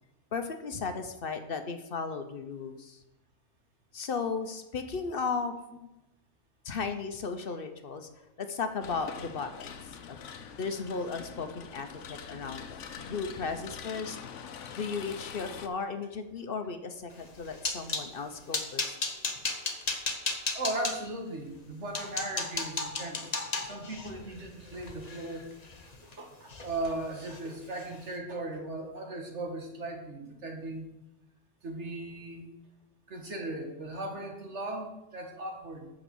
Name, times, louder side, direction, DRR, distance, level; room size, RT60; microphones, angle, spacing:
voice 1, 0.3-3.0 3.9-5.6 6.6-8.1 8.4-10.2 10.6-14.2 14.7-19.0, left 5 dB, 55° left, 7 dB, 0.9 m, -35 dB
sound 1, 8.8-15.7, left 7 dB, 90° left, 1.0 m, -44 dB
sound 2, 17.2-18.1 18.5-21.0 21.6-21.7 21.9-26.1 26.5-26.9 27.2-27.4 27.8-28.0, left 3 dB, 35° left, 1.1 m, -34 dB
voice 2, 20.5-23.3 23.6-25.5 26.0-30.9 31.6-32.5 33.1-35.9, right 2 dB, 75° right, 2 dB, 1.9 m, -37 dB
8.7 x 5.2 x 7.1 m, 0.91 s
omnidirectional pair, 1.2 m